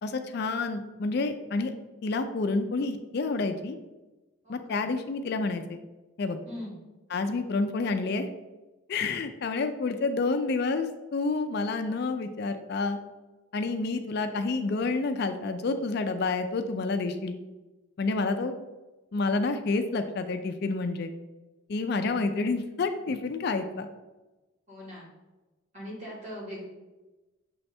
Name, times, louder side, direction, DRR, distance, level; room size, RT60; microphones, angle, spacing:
voice 1, 0.0-1.7 2.0-3.8 4.5-5.8 6.2-6.4 7.1-8.3 8.9-13.0 13.5-17.4 18.0-18.5 19.1-21.1 21.7-23.9, left 3 dB, 50° left, 8 dB, 0.4 m, -29 dB
voice 2, 4.4-4.8 6.5-6.8 24.7-25.1 25.7-26.6, equal, 35° right, -5 dB, 1.9 m, -40 dB
6.9 x 3.3 x 4.2 m, 1.1 s
head